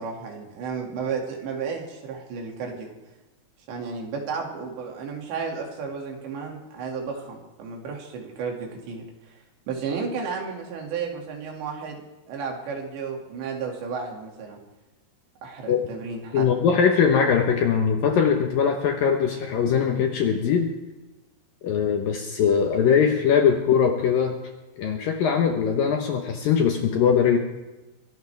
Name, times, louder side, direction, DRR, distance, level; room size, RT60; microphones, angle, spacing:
voice 1, 0.0-2.9 3.7-9.4 9.7-14.6 15.4-16.5, right 5 dB, 75° right, 0 dB, 4.6 m, -33 dB
voice 2, 16.3-20.7 21.6-24.4 24.8-27.4, left 7 dB, 65° left, 3 dB, 2.4 m, -21 dB
23.0 x 17.0 x 3.5 m, 1.1 s
omnidirectional pair, 5.2 m